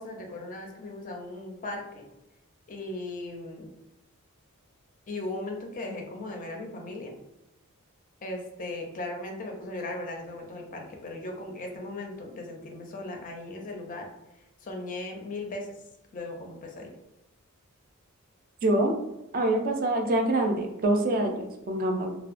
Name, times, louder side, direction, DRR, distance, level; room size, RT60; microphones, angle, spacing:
voice 1, 0.0-2.1 2.7-3.7 5.1-7.1 8.2-14.1 14.6-15.7 16.1-16.9, left 2 dB, 35° left, 2 dB, 0.4 m, -37 dB
voice 2, 18.6-18.9 19.3-22.2, right 1 dB, 40° right, 3 dB, 0.4 m, -25 dB
2.7 x 2.1 x 2.4 m, 0.89 s
head